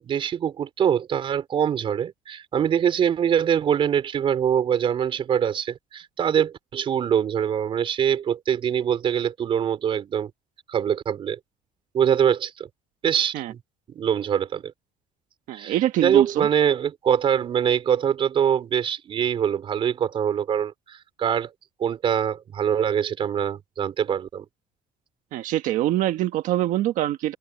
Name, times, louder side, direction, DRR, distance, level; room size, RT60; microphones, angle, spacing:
voice 1, 0.0-10.3 10.7-11.4 11.9-12.7 13.0-13.6 13.9-14.7 15.5-21.5 21.8-24.4, right 8 dB, 40° right, 4.5 m, -23 dB
voice 2, 15.5-16.5 25.3-27.3, right 14 dB, 70° right, 1.5 m, -24 dB
open air
cardioid pair, 165°, 14 cm